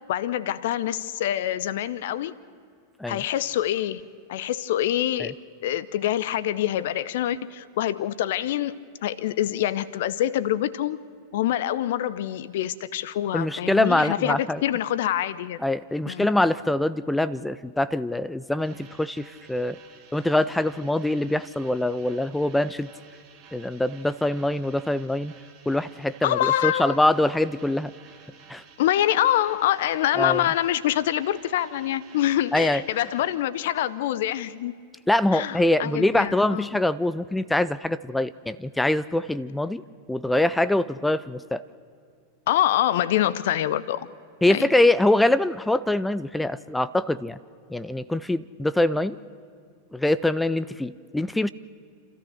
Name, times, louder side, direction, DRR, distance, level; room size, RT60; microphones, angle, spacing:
voice 1, 0.1-2.3 3.1-4.0 4.3-5.3 5.6-8.8 9.0-11.0 11.3-15.6 16.1-16.3 26.2-27.0 28.8-34.7 35.3-36.7 42.5-44.1 44.5-44.7, left 12 dB, 55° left, 17 dB, 0.6 m, -25 dB
voice 2, 13.3-14.6 15.6-19.8 20.1-22.9 23.5-25.3 25.7-27.9 28.5-28.6 30.2-30.4 32.5-32.8 35.1-39.8 40.1-41.6 44.4-47.4 47.7-49.2 49.9-51.5, left 1 dB, 5° left, 15 dB, 0.4 m, -24 dB
sound 1, 18.6-33.4, right 6 dB, 35° right, 2.4 m, -52 dB
29.5 x 13.5 x 6.5 m, 2.3 s
figure-of-eight pair, 90°, 0 cm